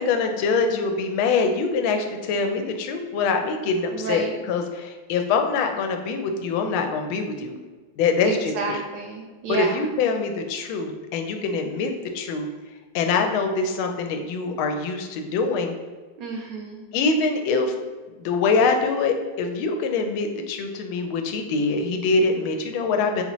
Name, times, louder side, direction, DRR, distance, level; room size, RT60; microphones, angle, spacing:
voice 1, 0.0-7.6 8.0-8.8 9.5-12.5 12.9-15.7 16.9-17.7 18.2-23.2, left 4 dB, 85° left, 5 dB, 1.4 m, -24 dB
voice 2, 3.9-4.3 8.2-9.9 16.2-16.9, right 4 dB, 75° right, 1 dB, 1.1 m, -30 dB
4.2 x 4.0 x 3.0 m, 1.3 s
omnidirectional pair, 2.2 m